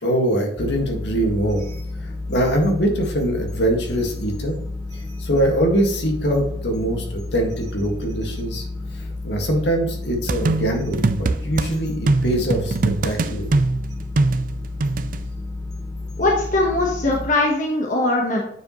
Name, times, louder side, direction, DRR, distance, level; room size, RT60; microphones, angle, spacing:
voice 1, 0.0-1.6 2.3-4.6 5.2-8.6 8.9-12.8 13.0-13.6, right 1 dB, 75° left, 2 dB, 1.8 m, -23 dB
sound 1, 0.6-17.3, left 2 dB, 20° left, 1.7 m, -31 dB
sound 2, 10.3-11.7 12.1-15.2, right 2 dB, 50° right, 0.4 m, -22 dB
voice 2, 16.2-18.4, left 2 dB, 45° left, -1 dB, 1.2 m, -20 dB
9.2 x 4.9 x 3.1 m, 0.74 s
head